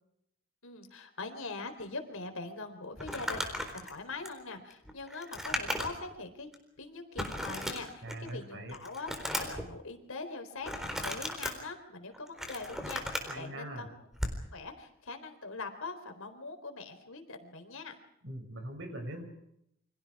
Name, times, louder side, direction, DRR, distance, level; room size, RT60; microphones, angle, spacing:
voice 1, 0.6-6.5 6.8-14.0 14.5-18.0, left 3 dB, 80° left, 7 dB, 4.0 m, -42 dB
Crumpling crinkling, 3.0-6.1 6.5-6.6 7.2-8.3 8.7-9.6 10.6-11.5 12.1-13.3 14.1-14.4, equal, ahead, 4.0 m, -36 dB
voice 2, 8.0-8.7 13.3-13.9 18.2-19.2, right 1 dB, 60° right, 5 dB, 6.7 m, -41 dB
29.0 x 25.5 x 4.9 m, 0.77 s
head